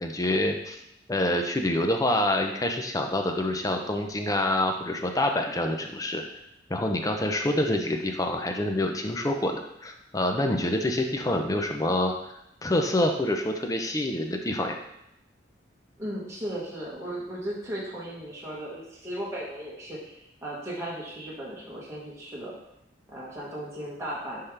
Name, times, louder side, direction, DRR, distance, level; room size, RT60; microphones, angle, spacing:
voice 1, 0.0-0.8 1.1-6.2 6.7-12.1 12.6-14.8, left 1 dB, 20° left, 4 dB, 0.6 m, -26 dB
voice 2, 16.0-22.5 23.1-24.4, right 1 dB, 15° right, -6 dB, 1.7 m, -36 dB
9.9 x 3.7 x 3.4 m, 0.82 s
head